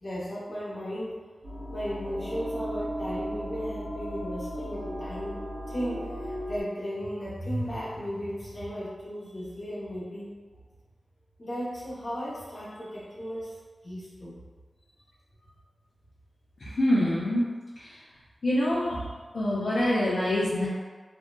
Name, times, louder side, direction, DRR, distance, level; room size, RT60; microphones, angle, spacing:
voice 1, 0.0-1.1 1.7-5.4 5.7-10.3 11.4-13.5 13.8-14.4, equal, 55° left, -9 dB, 0.8 m, -35 dB
sound 1, 1.4-6.6, equal, 55° right, 1.4 m, -36 dB
voice 2, 16.6-17.5 17.8-18.0 18.4-19.0 19.3-20.7, left 1 dB, 80° left, -9 dB, 0.4 m, -25 dB
2.6 x 2.2 x 2.2 m, 1.4 s
cardioid pair, 40°, 0 cm